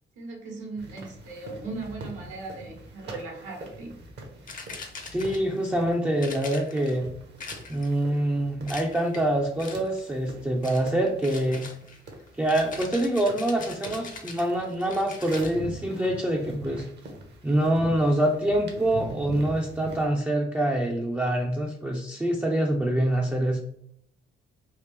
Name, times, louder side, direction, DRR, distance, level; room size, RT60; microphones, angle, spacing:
voice 1, 0.1-3.9, right 3 dB, 80° right, -1 dB, 1.3 m, -38 dB
sound 1, 0.8-20.1, right 1 dB, 60° right, 0.9 m, -43 dB
sound 2, 4.5-5.6 6.2-7.0 7.4-8.0 8.7-9.3 9.6-10.0 10.6-10.9 11.2-15.6, left 4 dB, 45° left, 0.7 m, -42 dB
voice 2, 5.1-7.1 7.7-11.7 12.4-16.9 17.4-23.6, right 1 dB, 10° right, -1 dB, 0.4 m, -25 dB
3.3 x 2.4 x 3.2 m, 0.71 s
cardioid pair, 90°, 20 cm